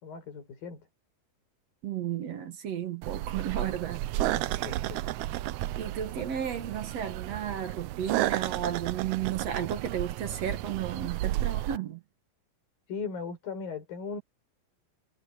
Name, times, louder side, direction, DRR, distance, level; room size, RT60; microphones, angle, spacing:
voice 1, 0.0-0.9 4.2-5.0 6.2-6.3 12.9-14.2, left 5 dB, 85° left, 6.1 m, -38 dB
voice 2, 1.8-4.0 5.8-12.0, right 9 dB, 55° right, 2.2 m, -33 dB
sound 1, 3.0-11.8, right 15 dB, 80° right, 1.6 m, -32 dB
omnidirectional pair, 4.0 m